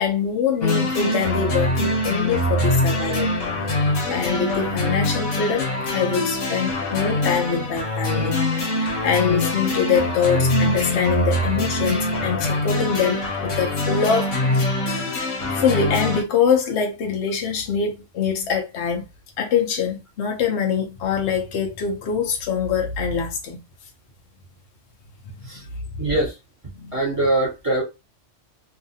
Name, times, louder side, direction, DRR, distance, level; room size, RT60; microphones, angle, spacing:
voice 1, 0.0-3.3 3.7-19.1 19.4-23.6 26.7-27.0, left 6 dB, 65° left, 0.9 m, -24 dB
sound 1, 0.6-16.2, left 1 dB, 90° left, 1.3 m, -23 dB
voice 2, 26.0-26.4 26.9-27.8, right 2 dB, 25° right, 1.3 m, -22 dB
2.7 x 2.5 x 2.7 m
omnidirectional pair, 1.3 m